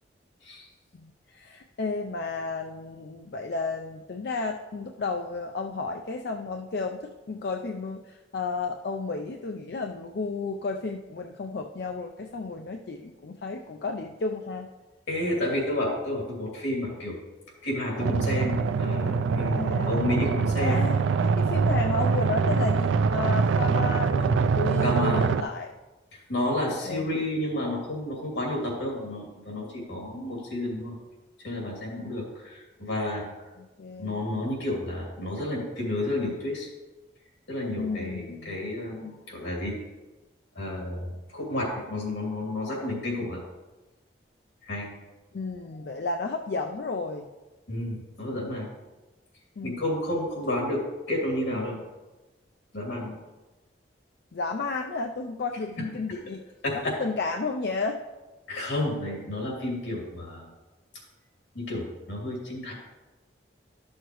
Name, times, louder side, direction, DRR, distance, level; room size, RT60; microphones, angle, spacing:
voice 1, 0.9-14.7 19.4-20.0 20.6-25.7 26.9-27.1 33.6-34.2 37.8-38.6 45.3-47.3 49.6-49.8 54.3-56.4 56.8-58.0, left 3 dB, 60° left, 3 dB, 0.4 m, -32 dB
voice 2, 15.1-17.2 17.6-20.9 24.8-25.2 26.1-31.0 31.4-33.2 34.0-36.7 37.5-39.8 40.5-43.4 44.6-44.9 47.7-48.7 49.6-50.8 51.1-51.8 52.7-53.2 56.6-57.0 58.5-60.5 61.5-62.7, left 1 dB, 85° left, -2 dB, 2.7 m, -31 dB
sound 1, 18.0-25.4, right 5 dB, 90° right, 0.3 m, -24 dB
12.0 x 6.4 x 3.1 m, 1.2 s
head